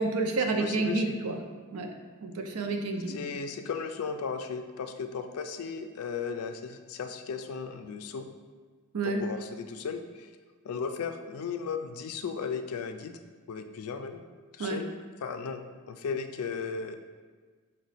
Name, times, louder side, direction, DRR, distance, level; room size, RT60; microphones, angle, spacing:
voice 1, 0.0-1.4 1.7-1.9 2.2-3.2 8.9-9.2 14.6-14.8, right 3 dB, 85° right, 4 dB, 0.5 m, -29 dB
voice 2, 0.6-1.2 3.1-8.3 9.0-10.3 10.6-13.2 13.5-14.2 14.5-14.9 15.2-15.6 15.9-17.0, left 5 dB, 80° left, 7 dB, 0.4 m, -35 dB
4.9 x 2.2 x 4.0 m, 1.5 s
head